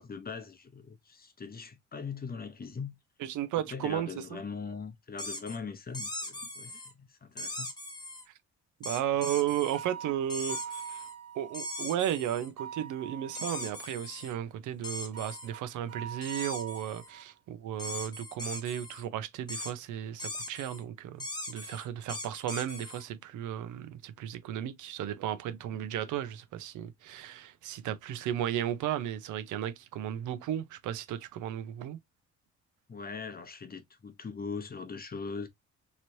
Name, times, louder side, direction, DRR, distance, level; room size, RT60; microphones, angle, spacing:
voice 1, 0.0-2.9 3.7-7.7 32.9-35.5, left 5 dB, 30° left, 0.8 m, -41 dB
voice 2, 3.2-4.4 8.8-11.0 11.3-32.0, right 11 dB, 85° right, 0.6 m, -34 dB
sound 1, 5.2-5.6 5.9-6.9 7.4-8.2 8.8-9.8 10.3-11.1 11.5-12.5 13.3-14.3 14.8-15.5 16.2-17.1 17.8-19.0 19.5-19.7 20.2-20.8 21.2-23.0, left 1 dB, 15° left, 1.2 m, -40 dB
sound 2, 9.7-11.9 12.6-13.8 15.1-17.3, right 8 dB, 55° right, 0.9 m, -44 dB
3.1 x 2.9 x 2.7 m
cardioid pair, 90°, 30 cm